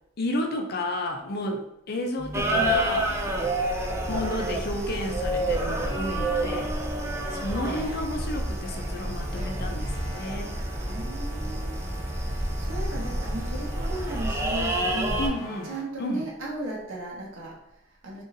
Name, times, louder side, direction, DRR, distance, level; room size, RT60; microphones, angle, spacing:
voice 1, 0.2-3.1 4.1-6.7 7.3-10.5 15.2-15.7 16.0-16.2, left 1 dB, 50° left, 4 dB, 0.5 m, -31 dB
sound 1, 2.2-15.8, right 1 dB, 40° right, 1.1 m, -43 dB
sound 2, 2.3-15.3, right 1 dB, 15° right, 0.4 m, -29 dB
voice 2, 2.5-3.4 10.8-11.8 12.1-15.2 15.6-18.2, right 1 dB, 80° right, -4 dB, 1.2 m, -37 dB
3.9 x 3.7 x 2.6 m, 0.79 s
head